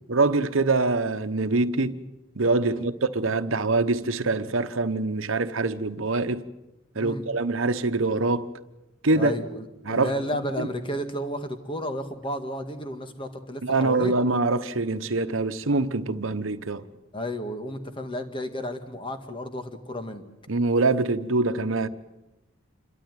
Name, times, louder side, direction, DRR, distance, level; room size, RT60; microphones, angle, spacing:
voice 1, 0.1-2.0 2.3-6.5 6.9-8.5 9.0-9.3 9.8-10.1 10.6-10.7 13.6-16.8 20.5-21.9, right 3 dB, 75° right, 1.1 m, -24 dB
voice 2, 9.2-14.1 17.1-20.2, equal, 25° left, 1.9 m, -32 dB
28.0 x 13.0 x 9.2 m
head